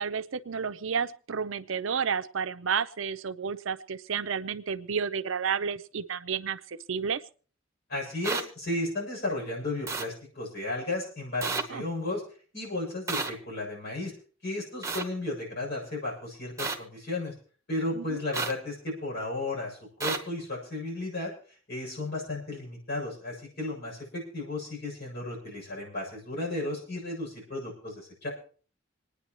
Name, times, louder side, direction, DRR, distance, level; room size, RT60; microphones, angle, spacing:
voice 1, 0.0-7.2 11.7-11.8 17.9-18.2, right 6 dB, 70° right, 12 dB, 0.6 m, -31 dB
voice 2, 7.9-12.2 12.5-14.1 14.4-17.3 17.7-21.3 21.7-28.3, left 2 dB, 55° left, -2 dB, 7.2 m, -34 dB
sound 1, 8.2-8.4 9.9-10.0 11.4-11.6 13.1-13.3 14.8-15.0 16.6-16.8 18.3-18.5 20.0-20.2, right 4 dB, 15° right, 1.2 m, -30 dB
27.0 x 9.8 x 3.1 m, 0.41 s
head